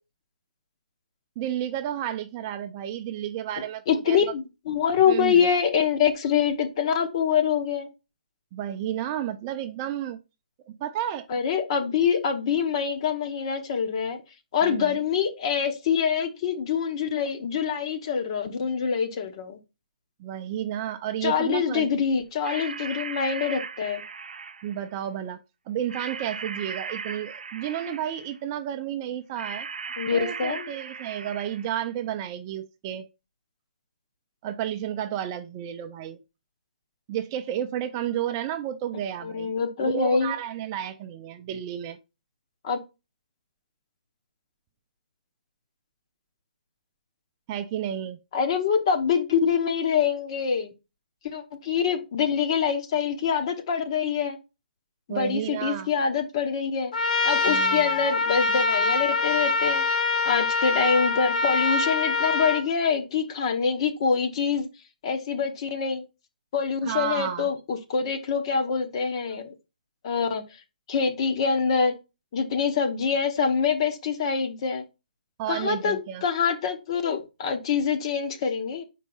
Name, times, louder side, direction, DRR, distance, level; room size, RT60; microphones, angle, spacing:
voice 1, 1.4-4.3 5.1-5.5 8.5-10.2 10.7-11.3 14.6-15.0 20.2-22.0 24.6-25.4 25.7-29.7 30.1-33.0 34.4-36.2 37.1-39.5 39.8-42.0 47.5-48.2 55.1-55.9 57.5-57.9 66.8-67.5 75.4-76.2, right 10 dB, 25° right, 0.4 m, -32 dB
voice 2, 3.9-7.9 11.3-14.2 14.5-19.6 21.2-24.0 30.0-30.7 39.2-40.3 42.6-42.8 48.3-50.7 51.2-54.4 55.1-56.9 57.2-59.8 60.2-64.7 65.0-66.0 66.5-69.5 70.0-70.4 70.9-71.9 72.3-74.8 75.5-78.8, left 6 dB, 40° left, 1.0 m, -25 dB
sound 1, 22.4-24.9 25.9-28.3 29.4-31.8, right 5 dB, 85° right, 0.6 m, -37 dB
Trumpet, 56.9-62.6, left 4 dB, 65° left, 1.2 m, -24 dB
4.6 x 4.1 x 5.4 m
hypercardioid pair, 160°, 5 cm